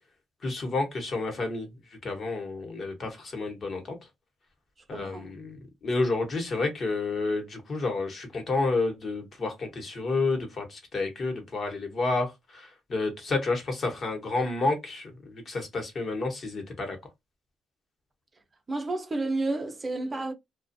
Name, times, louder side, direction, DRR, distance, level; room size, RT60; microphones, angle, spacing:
voice 1, 0.4-1.7 2.0-4.0 4.9-17.0, left 3 dB, 45° left, 1.1 m, -30 dB
voice 2, 4.9-5.3 18.7-20.3, right 2 dB, 25° right, 0.7 m, -31 dB
2.4 x 2.3 x 2.6 m
cardioid pair, 90°, 0 cm